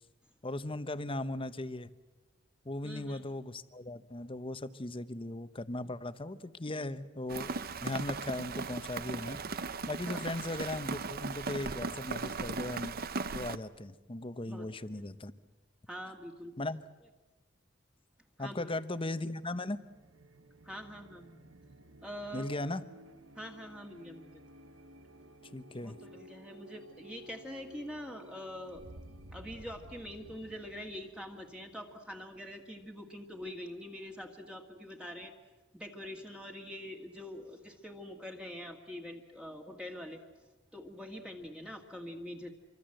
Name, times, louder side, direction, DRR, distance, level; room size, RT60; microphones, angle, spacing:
voice 1, 0.4-1.9 2.6-7.6 7.8-9.4 9.9-13.0 13.3-15.3 16.6-16.8 18.4-19.8 22.3-22.8 25.5-26.0, left 2 dB, 25° left, 13 dB, 0.9 m, -38 dB
voice 2, 2.8-3.2 10.1-10.3 14.5-14.7 15.9-16.5 18.4-18.8 20.6-21.4 22.0-22.5 23.4-24.3 25.8-28.9 29.3-35.3 35.7-40.2 40.7-42.5, equal, 5° right, 2 dB, 1.8 m, -44 dB
Rain, 7.3-13.6, right 4 dB, 50° right, 0.8 m, -38 dB
sound 1, 19.5-33.0, right 1 dB, 90° right, 1.4 m, -55 dB
26.5 x 24.5 x 7.8 m, 1.2 s
head